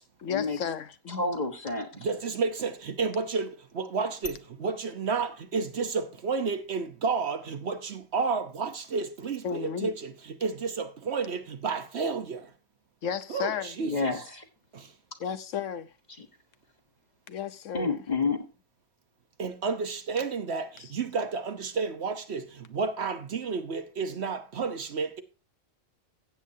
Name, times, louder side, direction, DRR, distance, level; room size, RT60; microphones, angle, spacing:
voice 1, 0.2-1.2 9.4-9.9 13.0-13.7 15.2-15.9 17.3-18.0 20.8-20.9, left 8 dB, 75° left, 1.1 m, -33 dB
voice 2, 1.1-1.9 13.8-14.4 16.2-16.3 17.7-18.4, left 3 dB, 35° left, 1.4 m, -29 dB
voice 3, 1.9-12.5 13.3-14.2 14.7-14.9 19.4-25.2, right 5 dB, 60° right, 1.1 m, -31 dB
15.5 x 8.1 x 2.7 m
omnidirectional pair, 1.3 m